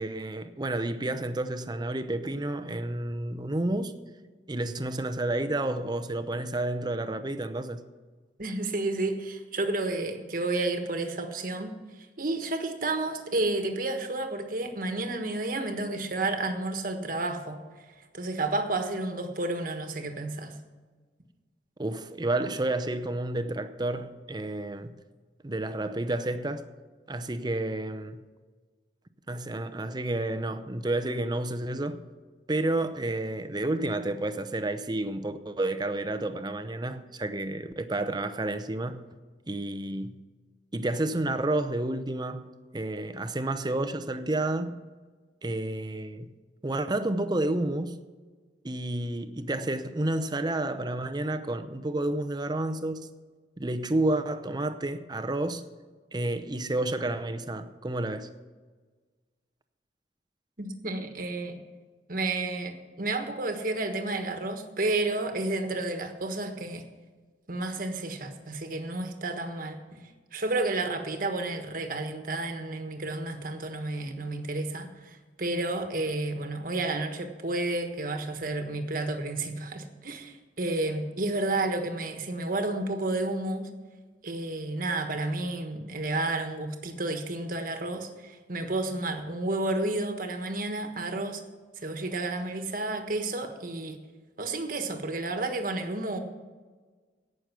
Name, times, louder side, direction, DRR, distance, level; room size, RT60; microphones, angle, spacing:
voice 1, 0.0-3.9 4.5-7.8 21.8-24.9 25.4-26.7 27.1-28.2 29.3-32.0 32.5-39.0 39.5-40.2 40.7-42.5 42.7-44.8 45.4-46.3 46.6-48.0 48.6-53.1 53.6-55.6 56.1-58.3, right 2 dB, 25° right, 0.7 m, -30 dB
voice 2, 8.4-11.8 12.2-17.6 18.1-20.6 60.6-61.6 62.1-66.8 67.5-70.0 70.3-83.7 84.2-91.4 91.8-94.0 94.4-96.2, right 2 dB, 50° right, 1.4 m, -31 dB
17.0 x 6.5 x 6.0 m
head